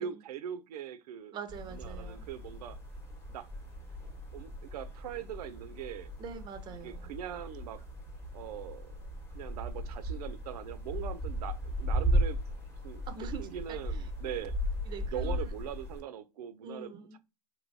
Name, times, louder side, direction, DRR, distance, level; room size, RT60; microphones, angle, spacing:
voice 1, 0.0-1.3 1.7-2.8 3.3-3.5 4.3-6.1 6.8-7.8 8.3-8.9 9.3-12.4 12.8-13.0 13.4-14.5 15.1-17.2, right 9 dB, 75° right, 0.4 m, -41 dB
voice 2, 1.3-2.2 6.2-7.1 13.1-14.0 14.3-14.4 14.9-15.5 16.6-17.2, right 6 dB, 25° right, 0.5 m, -44 dB
sound 1, 1.5-16.0, equal, 10° left, 0.9 m, -36 dB
3.1 x 2.7 x 2.6 m
hypercardioid pair, 130°, 20 cm